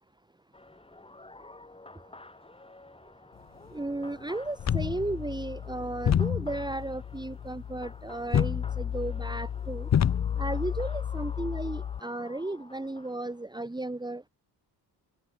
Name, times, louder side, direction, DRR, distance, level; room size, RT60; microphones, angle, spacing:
sound 1, 0.5-13.5, left 2 dB, 15° left, 5.5 m, -51 dB
voice 1, 3.7-9.9 10.4-14.2, right 2 dB, 10° right, 2.8 m, -34 dB
sound 2, 4.6-12.0, left 9 dB, 40° left, 0.9 m, -30 dB
cardioid pair, 105°, 43 cm